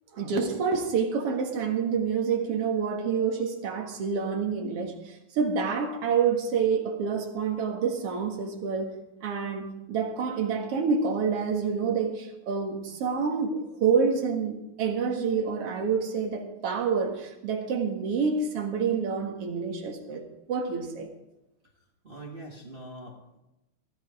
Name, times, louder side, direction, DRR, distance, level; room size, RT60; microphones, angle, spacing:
voice 1, 0.1-8.9 9.2-20.2 20.5-21.1, right 5 dB, 55° right, 2 dB, 2.6 m, -28 dB
voice 2, 22.0-23.4, right 1 dB, 30° right, 0 dB, 1.1 m, -43 dB
14.0 x 13.0 x 4.9 m, 0.92 s
omnidirectional pair, 3.4 m